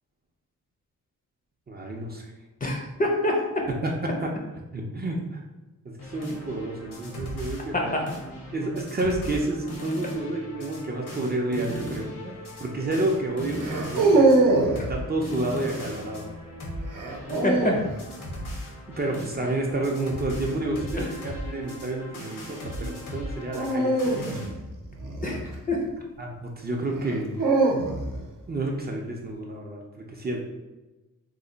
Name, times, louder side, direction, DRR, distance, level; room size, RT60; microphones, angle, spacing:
voice 1, 1.7-2.3 3.8-3.9 4.7-5.4 5.8-8.0 8.5-14.3 14.9-16.3 19.0-24.2 26.2-27.4 28.5-29.8 30.1-30.4, right 2 dB, 30° right, 0 dB, 0.4 m, -30 dB
voice 2, 2.6-3.4 7.7-8.0 12.2-12.3 14.1-14.3 17.4-17.7 21.0-21.1 25.2-25.8, left 1 dB, 25° left, 0 dB, 0.4 m, -26 dB
sound 1, 6.0-24.5, equal, 85° left, 1.0 m, -38 dB
sound 2, 11.7-12.0 13.6-14.8 16.9-17.9 20.4-20.7 23.5-25.9 27.0-28.3, right 2 dB, 80° right, 0.7 m, -23 dB
3.2 x 2.1 x 3.8 m, 1.1 s
wide cardioid pair, 150°, 32 cm